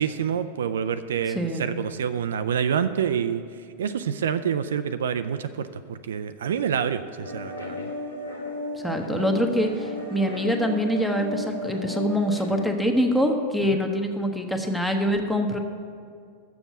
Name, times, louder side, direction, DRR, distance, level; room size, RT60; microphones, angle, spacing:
voice 1, 0.0-3.4 3.8-7.9 13.7-13.8, right 8 dB, 65° right, 11 dB, 0.3 m, -27 dB
sound 1, 7.2-12.7, left 1 dB, 85° left, 1.6 m, -34 dB
voice 2, 8.7-15.6, equal, 5° left, 4 dB, 0.9 m, -24 dB
7.0 x 7.0 x 8.0 m, 2.2 s
figure-of-eight pair, 90°, 0 cm